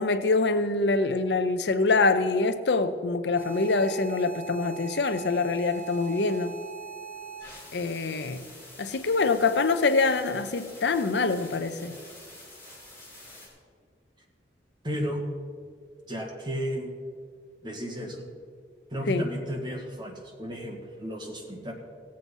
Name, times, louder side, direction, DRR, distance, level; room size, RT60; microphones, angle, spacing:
voice 1, 0.0-6.5 7.7-8.4 8.8-11.9 19.1-19.2, left 3 dB, 80° left, 11 dB, 0.6 m, -25 dB
sound 1, 3.3-13.5, right 4 dB, 15° left, 4.0 m, -44 dB
voice 2, 14.8-15.2 16.1-16.9 17.6-18.2 18.9-21.7, equal, 25° right, -1 dB, 1.8 m, -33 dB
17.0 x 7.7 x 5.5 m, 2.1 s
head